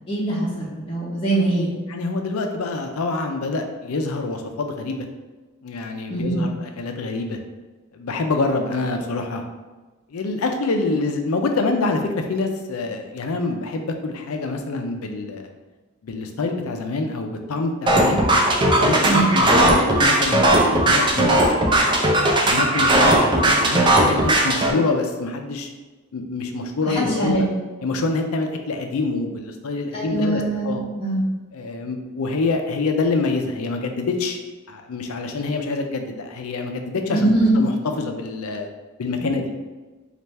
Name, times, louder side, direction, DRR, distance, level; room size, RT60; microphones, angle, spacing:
voice 1, 0.1-1.7 6.1-6.5 19.0-19.3 26.9-27.4 29.9-31.2 37.1-37.5, right 2 dB, 25° left, -8 dB, 0.6 m, -22 dB
voice 2, 1.9-5.1 5.6-7.4 7.9-9.4 10.1-15.5 16.0-18.2 18.7-25.7 26.1-27.5 27.8-30.8 31.5-34.4 34.7-38.7 39.0-39.5, left 3 dB, 80° left, 4 dB, 0.5 m, -26 dB
sound 1, 17.9-24.7, right 1 dB, 20° right, 0.4 m, -17 dB
3.3 x 2.4 x 4.1 m, 1.2 s
head